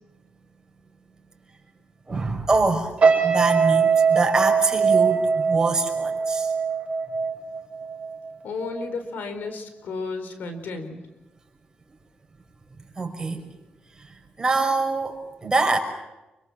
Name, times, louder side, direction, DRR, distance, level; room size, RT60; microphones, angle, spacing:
voice 1, 2.1-2.9 3.2-6.5 13.0-13.4 14.4-15.8, right 3 dB, 20° right, 4 dB, 5.8 m, -24 dB
sound 1, 3.0-8.3 8.6-8.9, right 5 dB, 40° right, 5.4 m, -22 dB
voice 2, 8.4-11.0, left 4 dB, 85° left, 8 dB, 4.6 m, -33 dB
28.0 x 25.0 x 7.5 m, 0.99 s
cardioid pair, 115°, 3 cm